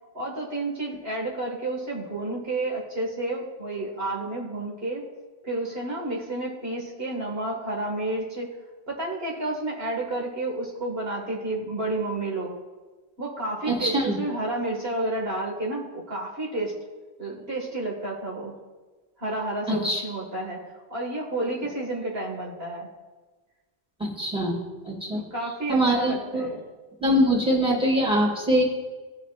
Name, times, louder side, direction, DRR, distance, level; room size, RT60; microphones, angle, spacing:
voice 1, 0.1-5.0 5.4-8.6 8.9-12.6 13.2-16.7 17.2-18.6 19.2-22.9 25.1-26.6, right 2 dB, 65° right, -2 dB, 2.1 m, -30 dB
voice 2, 13.6-14.2 19.7-20.0 24.0-24.6 24.8-25.2 25.7-26.5 27.0-28.6, equal, 5° right, -2 dB, 2.1 m, -23 dB
18.0 x 7.1 x 2.5 m, 1.3 s
omnidirectional pair, 1.1 m